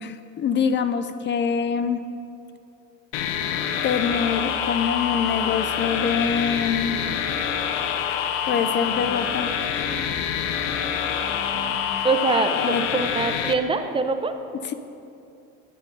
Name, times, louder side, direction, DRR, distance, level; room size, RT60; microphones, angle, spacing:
voice 1, 0.0-2.0 3.8-7.0 8.4-9.5 12.5-12.8, left 6 dB, 30° left, 11 dB, 0.5 m, -24 dB
sound 1, 3.1-13.5, left 8 dB, 70° left, 0.8 m, -26 dB
sound 2, 4.0-11.7, equal, 60° right, 2.0 m, -43 dB
voice 2, 12.0-14.3, right 4 dB, 15° right, 7 dB, 0.7 m, -24 dB
8.1 x 7.1 x 6.7 m, 2.7 s
supercardioid pair, 100°, 38 cm